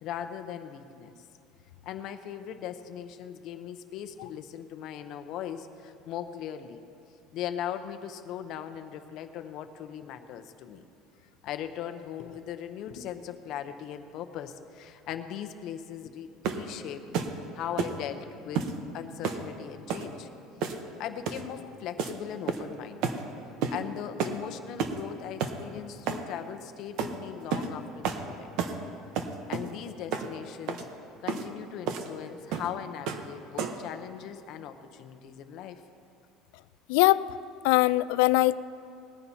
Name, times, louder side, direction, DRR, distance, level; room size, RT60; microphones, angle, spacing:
voice 1, 0.0-1.1 1.8-6.8 7.3-10.9 11.4-20.3 20.7-23.2 23.7-29.0 29.5-30.8 31.2-35.8, left 9 dB, 50° left, 8 dB, 0.8 m, -39 dB
sound 1, 16.4-16.7 17.1-17.4 17.8-18.0 18.6-18.8 19.2-19.5 19.9-20.1 20.6-20.9 21.3-21.5 22.0-22.2 22.5-22.7 23.0-23.2 23.6-23.8 24.2-24.4 24.8-25.0 25.4-25.6 26.1-26.3 27.0-27.1 27.5-27.7 28.0-28.2 28.6-28.8 29.2-29.7 30.1-30.3 30.7-30.9 31.3-31.5 31.9-32.1 32.5-32.7 33.1-33.3 33.6-33.9, right 6 dB, 60° right, 0.9 m, -31 dB
voice 2, 36.9-37.2 37.6-38.6, left 19 dB, 90° left, 16 dB, 0.3 m, -21 dB
20.0 x 14.5 x 2.8 m, 2.6 s
cardioid pair, 160°, 0 cm